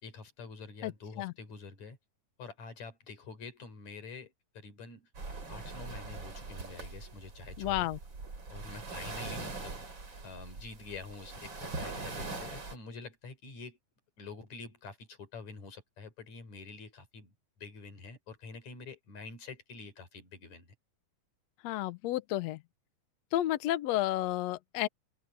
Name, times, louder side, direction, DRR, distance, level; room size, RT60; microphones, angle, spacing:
voice 1, 0.0-2.0 2.4-5.1 5.5-7.9 8.5-9.8 10.2-13.8 14.2-17.3 17.6-20.7, left 4 dB, 60° left, 5.4 m, -47 dB
sound 1, 5.1-12.8, right 3 dB, 35° right, 4.4 m, -42 dB
voice 2, 7.6-8.0 21.6-22.6 23.3-24.9, left 14 dB, 75° left, 1.7 m, -31 dB
open air
omnidirectional pair, 3.8 m